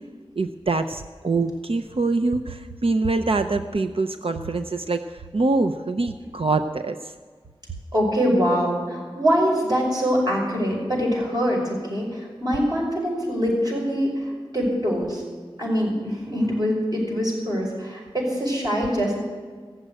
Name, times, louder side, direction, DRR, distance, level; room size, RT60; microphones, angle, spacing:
voice 1, 0.4-7.1, right 3 dB, 75° right, 7 dB, 0.6 m, -24 dB
voice 2, 7.9-15.2 15.6-19.1, equal, 45° right, -3 dB, 5.5 m, -24 dB
15.5 x 7.6 x 9.1 m, 1.5 s
wide cardioid pair, 50°, 10 cm